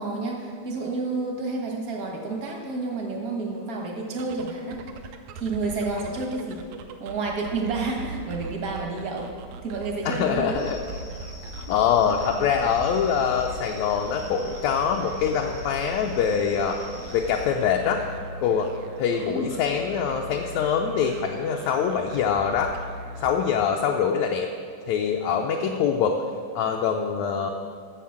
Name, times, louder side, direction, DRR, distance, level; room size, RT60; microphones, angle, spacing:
voice 1, 0.0-4.9 5.3-6.7 7.0-9.3 9.6-10.6 19.2-19.5, right 3 dB, 50° right, 0 dB, 1.1 m, -30 dB
sound 1, 4.1-23.8, right 2 dB, 80° right, 1.6 m, -40 dB
voice 2, 10.0-10.8 11.7-16.8 17.1-18.0 18.4-18.7 19.0-22.7 23.2-24.5 24.9-26.2 26.5-27.5, left 7 dB, 75° left, 1 dB, 1.7 m, -24 dB
sound 2, 10.5-17.5, left 2 dB, 45° left, 0.8 m, -41 dB
10.0 x 7.1 x 7.2 m, 2.1 s
omnidirectional pair, 3.6 m